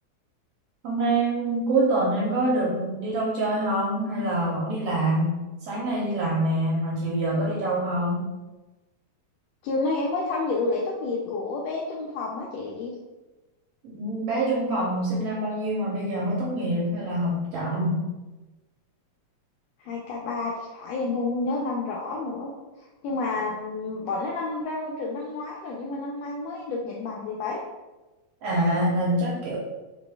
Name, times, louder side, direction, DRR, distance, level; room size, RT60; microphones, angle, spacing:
voice 1, 0.8-5.3 5.6-8.3 13.8-18.0 28.4-29.6, right 1 dB, 70° right, -5 dB, 1.6 m, -25 dB
voice 2, 9.6-12.9 19.8-22.5 22.8-27.6, left 3 dB, 85° left, -2 dB, 1.5 m, -30 dB
5.1 x 4.0 x 2.3 m, 1.1 s
omnidirectional pair, 3.5 m